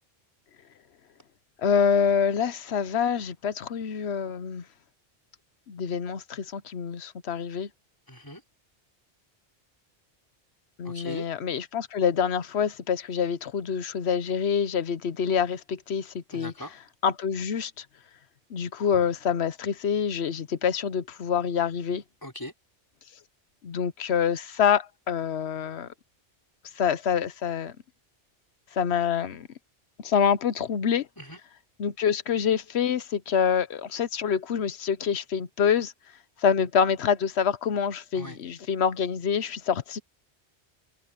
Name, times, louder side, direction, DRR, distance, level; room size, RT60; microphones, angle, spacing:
voice 1, 1.6-4.6 5.7-7.7 10.8-16.5 17.0-17.8 18.5-22.0 23.6-25.9 26.8-27.7 28.7-29.5 30.0-31.1 31.8-35.9 36.4-40.0, left 7 dB, 85° left, 1.1 m, -26 dB
voice 2, 8.1-8.4 10.8-11.3 16.3-16.7 22.2-22.5 31.2-31.4 38.1-38.4, left 1 dB, 20° left, 5.0 m, -39 dB
omnidirectional pair, 1.1 m